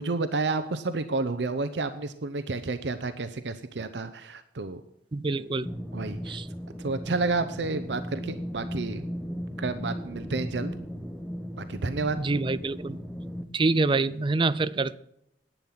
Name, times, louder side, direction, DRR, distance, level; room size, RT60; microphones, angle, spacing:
voice 1, 0.0-4.8 5.9-6.4 6.8-9.0 9.6-10.7 11.6-12.2, right 3 dB, 80° right, 0.7 m, -30 dB
voice 2, 5.1-5.7 6.3-6.4 12.2-13.0 13.5-15.0, right 3 dB, 30° right, 0.5 m, -26 dB
sound 1, 5.6-13.4, equal, 5° left, 0.9 m, -36 dB
11.0 x 9.4 x 5.9 m
head